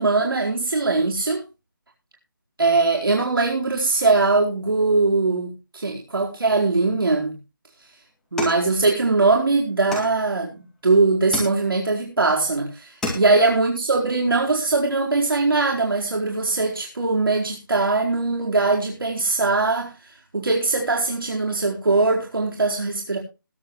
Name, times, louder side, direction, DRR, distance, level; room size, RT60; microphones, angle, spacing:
voice 1, 0.0-1.4 2.6-7.4 8.3-19.9 20.3-23.2, right 3 dB, 85° right, -1 dB, 4.5 m, -21 dB
sound 1, 8.4-9.3 9.9-10.6 11.3-12.0 12.5-12.6 12.8-13.6, left 2 dB, 5° left, 2.0 m, -32 dB
20.5 x 8.7 x 3.2 m, 0.29 s
hypercardioid pair, 175°, 11 cm